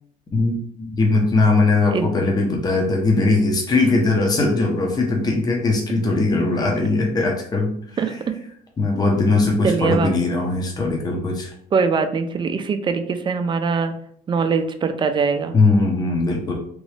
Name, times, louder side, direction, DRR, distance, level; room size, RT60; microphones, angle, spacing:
voice 1, 0.3-7.7 8.0-8.1 8.8-11.5 15.5-16.5, left 3 dB, 25° left, 0 dB, 0.7 m, -20 dB
voice 2, 8.0-8.4 9.6-10.1 11.7-13.9 14.3-15.5, right 5 dB, 30° right, 8 dB, 0.4 m, -22 dB
3.0 x 2.6 x 3.2 m, 0.66 s
cardioid pair, 110°, 17 cm